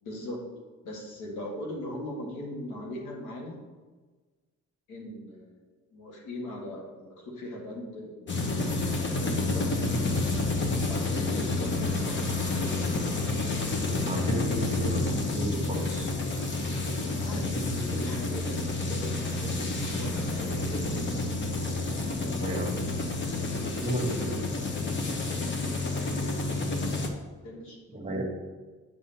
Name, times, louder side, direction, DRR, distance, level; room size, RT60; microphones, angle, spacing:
voice 1, 0.0-0.4 0.8-3.6 4.9-5.6 5.9-8.7 9.0-10.2 10.9-12.7 17.0-21.4 23.4-23.8 25.4-26.8 27.4-28.2, left 1 dB, 85° left, -1 dB, 1.7 m, -40 dB
sound 1, 8.3-27.1, left 2 dB, 40° left, 1.0 m, -29 dB
voice 2, 13.9-16.1 22.2-22.8 23.8-24.4 27.9-28.2, right 1 dB, 20° right, 1 dB, 1.4 m, -34 dB
8.8 x 5.5 x 2.8 m, 1.3 s
cardioid pair, 90°, 30 cm